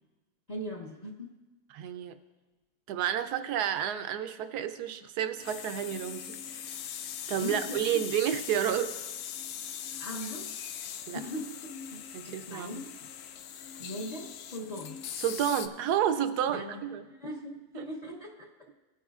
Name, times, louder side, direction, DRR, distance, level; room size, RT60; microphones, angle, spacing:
voice 1, 0.5-1.3 7.3-8.1 8.7-8.8 10.0-10.5 11.1-12.9 13.8-15.0 16.5-18.7, left 1 dB, 35° left, -3 dB, 0.8 m, -40 dB
voice 2, 1.7-2.2 2.9-6.6 7.3-8.9 11.1-11.2 12.1-12.8 15.2-17.0 17.8-17.9, right 10 dB, 80° right, 10 dB, 1.2 m, -30 dB
sound 1, 5.4-15.7, left 9 dB, 75° left, 1.0 m, -41 dB
18.0 x 9.2 x 2.4 m, 1.1 s
omnidirectional pair, 1.7 m